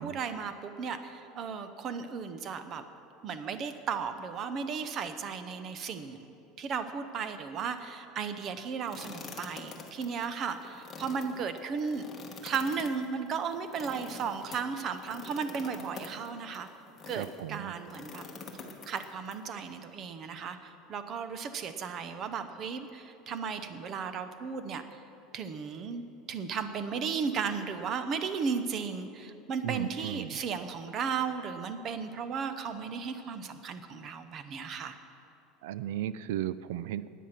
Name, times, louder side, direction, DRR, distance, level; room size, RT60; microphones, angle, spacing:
voice 1, 0.0-2.8 3.2-6.3 6.6-12.0 12.4-16.7 17.1-18.2 18.8-25.0 25.3-26.0 26.3-35.0, right 6 dB, 30° right, 10 dB, 0.7 m, -35 dB
sound 1, 8.9-17.4 17.9-19.3, left 4 dB, 15° left, 1.3 m, -46 dB
voice 2, 17.2-17.7 29.6-30.4 35.6-37.1, right 12 dB, 85° right, 16 dB, 0.4 m, -35 dB
16.5 x 10.0 x 5.9 m, 2.9 s
cardioid pair, 175°, 0 cm